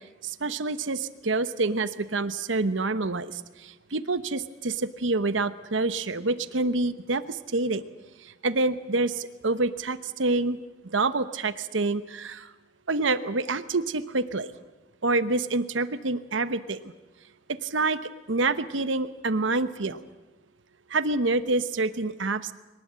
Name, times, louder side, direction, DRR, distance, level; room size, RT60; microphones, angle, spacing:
voice 1, 0.4-3.4 3.9-7.8 8.4-10.6 10.9-12.5 12.9-14.5 15.0-16.8 17.6-18.0 18.3-20.0 20.9-22.5, right 3 dB, 90° right, 12 dB, 1.0 m, -27 dB
23.0 x 19.5 x 7.6 m, 1.1 s
head